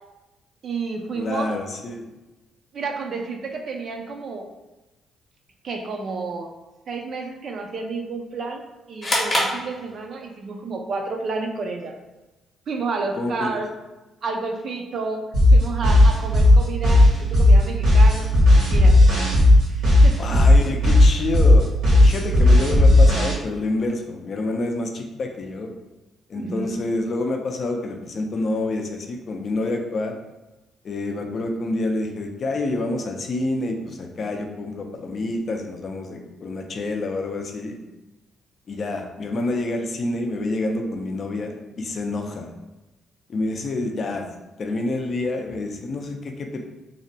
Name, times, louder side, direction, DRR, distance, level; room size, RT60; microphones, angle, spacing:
voice 1, 0.6-1.6 2.7-4.5 5.6-6.5 6.9-8.6 8.9-11.9 12.7-13.7 14.2-15.3 15.5-19.0 19.7-20.4 26.3-26.8, right 4 dB, 55° right, 3 dB, 0.4 m, -30 dB
voice 2, 1.2-2.2 13.1-13.6 20.2-21.7 22.0-25.7 26.3-30.2 30.8-37.8 38.7-42.5 43.3-44.2 44.6-46.7, left 2 dB, 50° left, 3 dB, 0.4 m, -28 dB
sound 1, 9.0-10.4, left 1 dB, 30° left, 0.8 m, -25 dB
sound 2, 15.3-23.3, left 1 dB, 80° right, 1.0 m, -14 dB
2.6 x 2.1 x 2.7 m, 1.0 s
cardioid pair, 90°, 0 cm